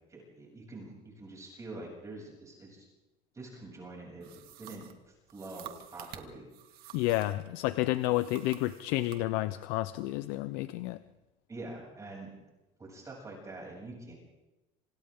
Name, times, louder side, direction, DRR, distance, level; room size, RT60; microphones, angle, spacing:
voice 1, 0.1-2.9 3.3-6.5 11.5-12.3 12.8-14.1, right 2 dB, 20° right, -2 dB, 7.7 m, -45 dB
sound 1, 4.2-7.5 7.9-9.2, right 13 dB, 65° right, 2.3 m, -50 dB
voice 2, 6.9-11.0, left 17 dB, 80° left, 13 dB, 0.8 m, -30 dB
27.5 x 27.5 x 3.9 m, 0.99 s
cardioid pair, 135°, 17 cm